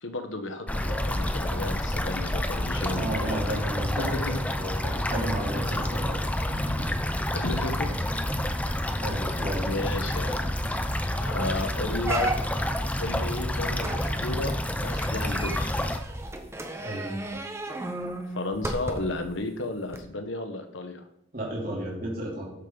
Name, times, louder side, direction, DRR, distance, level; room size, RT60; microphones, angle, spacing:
voice 1, 0.0-3.6 4.0-4.4 7.3-8.0 8.9-9.0 9.7-10.5 11.2-12.3 13.0-15.7 18.3-21.0, left 2 dB, 80° left, 7 dB, 1.2 m, -33 dB
sound 1, 0.7-16.0, left 1 dB, 5° left, 0.5 m, -29 dB
voice 2, 2.9-6.2 6.5-6.9 7.9-8.0 8.3-8.4 9.0-9.7 16.7-17.1 17.7-17.8 21.3-22.5, right 1 dB, 45° right, -4 dB, 3.0 m, -33 dB
sound 2, 10.7-11.0 11.4-11.5 12.0-12.8 13.8-19.3 19.9-20.0, right 2 dB, 15° right, 0.9 m, -34 dB
13.0 x 7.0 x 4.0 m, 0.77 s
head